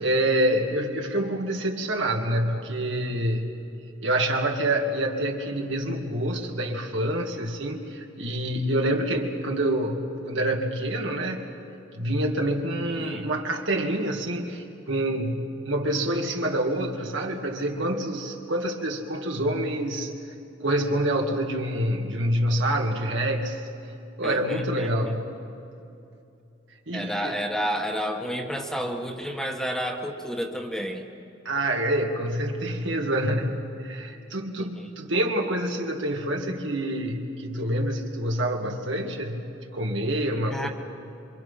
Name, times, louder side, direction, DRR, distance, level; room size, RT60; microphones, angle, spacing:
voice 1, 0.0-3.6 4.0-11.5 11.9-20.2 20.6-23.6 24.2-25.4 26.9-27.4 31.4-39.5 39.7-40.7, right 1 dB, 75° right, 1 dB, 2.4 m, -27 dB
voice 2, 12.9-13.3 24.2-25.1 26.9-31.0 34.6-34.9 40.5-40.7, equal, 5° left, 2 dB, 1.5 m, -31 dB
27.5 x 25.0 x 5.8 m, 2.7 s
head